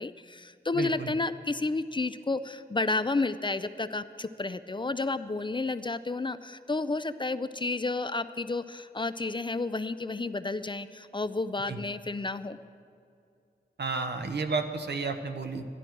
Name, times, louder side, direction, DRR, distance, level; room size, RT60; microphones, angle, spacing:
voice 1, 0.0-12.6, left 3 dB, 25° left, 12 dB, 0.4 m, -31 dB
voice 2, 0.7-1.2 11.7-11.8 13.8-15.6, right 4 dB, 70° right, 6 dB, 0.9 m, -32 dB
15.0 x 11.5 x 4.6 m, 2.5 s
wide cardioid pair, 75°, 18 cm